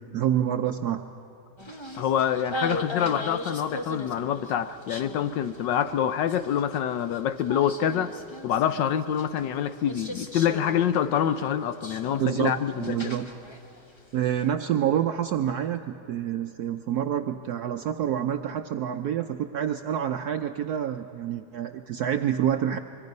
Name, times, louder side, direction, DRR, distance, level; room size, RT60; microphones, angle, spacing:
voice 1, 0.1-1.0 12.2-13.3 14.1-22.8, right 10 dB, 70° right, 7 dB, 0.9 m, -27 dB
sound 1, 1.6-14.4, left 1 dB, 25° left, 0.6 m, -39 dB
voice 2, 2.0-8.1 8.4-13.1, left 9 dB, 70° left, 12 dB, 1.2 m, -26 dB
24.5 x 22.5 x 5.3 m, 2.9 s
omnidirectional pair, 2.2 m